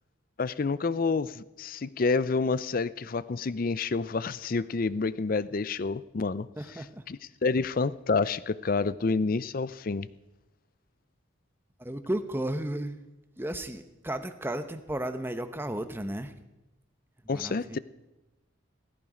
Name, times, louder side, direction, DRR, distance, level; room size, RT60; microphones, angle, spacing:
voice 1, 0.4-6.5 7.1-10.1 17.3-17.8, left 4 dB, 45° left, 17 dB, 0.5 m, -28 dB
voice 2, 6.6-7.1 11.8-13.0 13.4-16.3 17.3-17.8, right 1 dB, 10° right, 9 dB, 0.8 m, -34 dB
17.0 x 15.0 x 5.0 m, 1.0 s
head